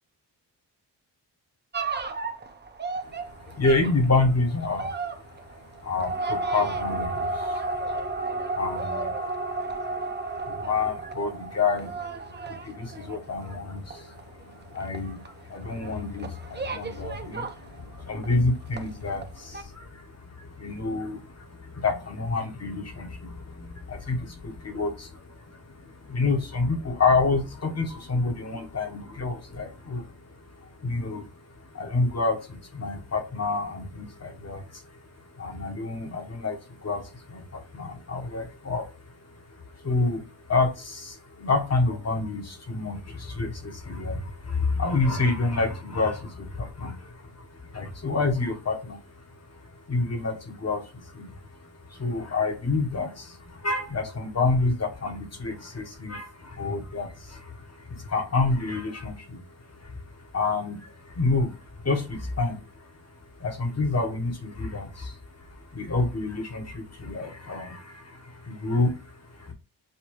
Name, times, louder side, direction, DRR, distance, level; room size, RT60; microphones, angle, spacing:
sound 1, 1.7-18.4 18.7-19.3 19.5-19.6, right 3 dB, 25° right, 0.6 m, -33 dB
voice 1, 3.0-69.5, left 3 dB, 35° left, 5 dB, 1.0 m, -29 dB
6.6 x 2.2 x 3.0 m, 0.31 s
cardioid pair, 65°, 42 cm